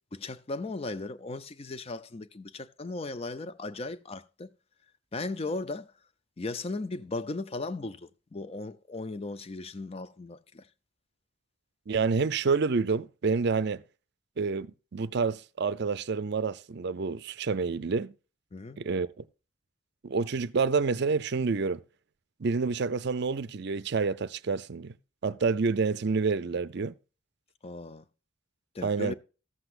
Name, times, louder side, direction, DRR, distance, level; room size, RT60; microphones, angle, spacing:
voice 1, 0.1-4.5 5.1-5.9 6.4-10.7 18.5-18.8 27.6-28.0 28.7-29.1, left 3 dB, 30° left, 0.5 m, -37 dB
voice 2, 11.9-13.8 14.4-18.1 18.8-19.2 20.0-21.8 22.4-24.9 25.2-26.9 28.8-29.1, right 4 dB, 55° right, 0.5 m, -28 dB
14.0 x 8.0 x 2.5 m
head